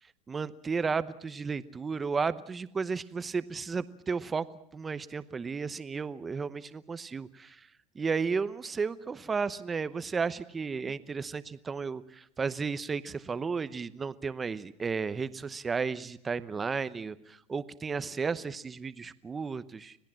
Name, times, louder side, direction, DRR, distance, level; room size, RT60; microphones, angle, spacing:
voice 1, 0.3-4.5 4.7-7.7 7.9-20.0, right 5 dB, 15° right, 15 dB, 0.8 m, -33 dB
26.5 x 17.5 x 7.6 m, 0.73 s
supercardioid pair, 145°, 0 cm